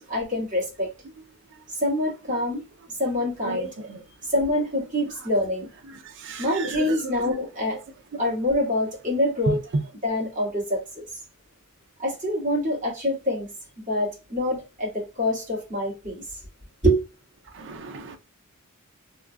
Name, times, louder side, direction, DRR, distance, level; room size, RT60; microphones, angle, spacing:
voice 1, 0.1-0.9 1.8-2.6 3.0-3.7 4.3-5.7 6.4-7.8 8.2-9.6 10.0-10.8 12.0-13.5 13.9-16.2 16.8-17.0, left 1 dB, 35° right, 1.8 m, -25 dB
voice 2, 6.2-7.0 7.3-7.4 17.5-18.2, right 3 dB, 55° right, 0.5 m, -35 dB
3.5 x 2.5 x 2.2 m
head